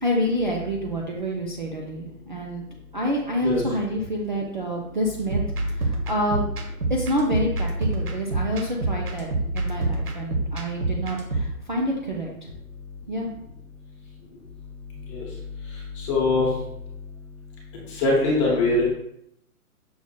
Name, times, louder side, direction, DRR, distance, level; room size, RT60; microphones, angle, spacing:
voice 1, 0.0-2.6 2.9-6.5 6.9-9.3 9.5-12.3 13.1-13.3, equal, 35° right, -2 dB, 0.4 m, -27 dB
sound 1, 5.2-11.5, right 2 dB, 80° right, 1.1 m, -27 dB
voice 2, 16.0-16.5 18.0-18.9, left 2 dB, 20° left, -3 dB, 0.9 m, -21 dB
6.1 x 3.4 x 2.2 m, 0.78 s
hypercardioid pair, 155°, 45 cm